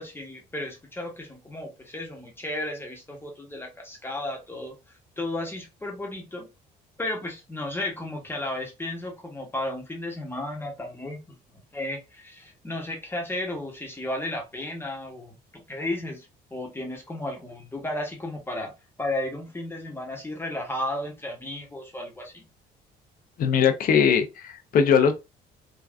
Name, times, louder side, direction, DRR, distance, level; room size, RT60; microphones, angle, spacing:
voice 1, 0.0-4.8 5.2-6.5 7.0-11.2 11.7-18.7 19.0-22.4, left 1 dB, 15° left, 0.9 m, -34 dB
voice 2, 23.4-25.1, left 7 dB, 55° left, 0.6 m, -20 dB
3.5 x 2.2 x 2.4 m
cardioid pair, 110°, 17 cm